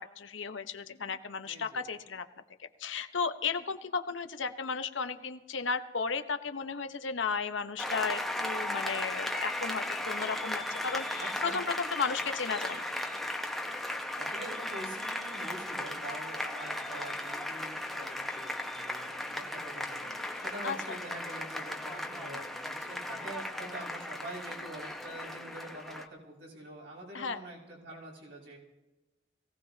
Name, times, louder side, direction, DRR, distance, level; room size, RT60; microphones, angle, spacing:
voice 1, 0.0-2.3 2.6-12.8 20.6-21.0 27.1-27.4, left 5 dB, 90° left, 9 dB, 0.9 m, -34 dB
voice 2, 1.4-1.9 11.2-11.6 13.8-28.6, right 1 dB, 70° right, -4 dB, 5.6 m, -45 dB
Applause, 7.8-26.1, left 1 dB, ahead, 0.9 m, -36 dB
22.0 x 17.0 x 2.8 m, 1.1 s
head